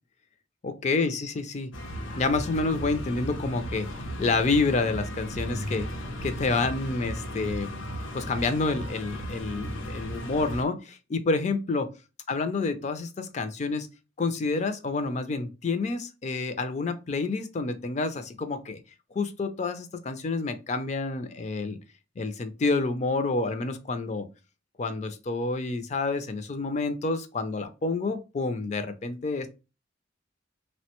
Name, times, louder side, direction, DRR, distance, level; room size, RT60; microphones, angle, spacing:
voice 1, 0.6-1.7 2.2-3.9 4.2-5.9 6.2-7.7 8.1-11.9 12.3-13.9 14.2-18.8 19.1-21.8 22.2-24.3 24.8-29.5, left 3 dB, 35° left, 9 dB, 0.4 m, -28 dB
sound 1, 1.7-10.6, equal, 80° left, 0.6 m, -35 dB
3.2 x 2.1 x 2.8 m, 0.29 s
head